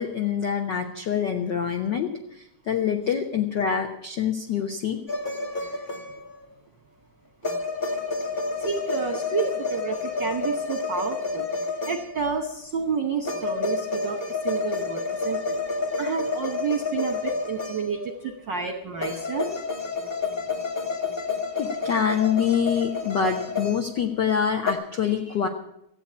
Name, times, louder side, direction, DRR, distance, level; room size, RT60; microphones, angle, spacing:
voice 1, 0.0-5.0 21.6-25.5, left 7 dB, 80° left, 4 dB, 0.9 m, -25 dB
sound 1, 5.1-6.4 7.4-12.3 13.2-18.2 19.0-24.3 24.6-24.7, left 4 dB, 25° left, 1.1 m, -30 dB
voice 2, 8.6-11.5 11.9-14.2 14.4-15.6 16.0-19.5, right 5 dB, 60° right, 4 dB, 1.1 m, -30 dB
14.0 x 8.6 x 8.5 m, 0.79 s
omnidirectional pair, 3.7 m